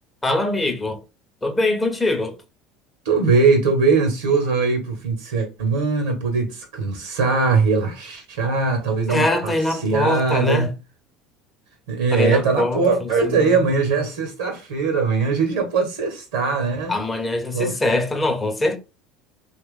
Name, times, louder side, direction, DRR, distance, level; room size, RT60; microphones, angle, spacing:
voice 1, 0.2-1.0 1.4-2.4 9.1-10.7 12.1-13.1 16.9-18.8, left 2 dB, 15° left, 0.8 m, -22 dB
voice 2, 3.0-10.7 11.9-16.9 17.5-17.8, right 4 dB, 75° right, 0.9 m, -21 dB
2.9 x 2.3 x 3.5 m
hypercardioid pair, 75°, 0 cm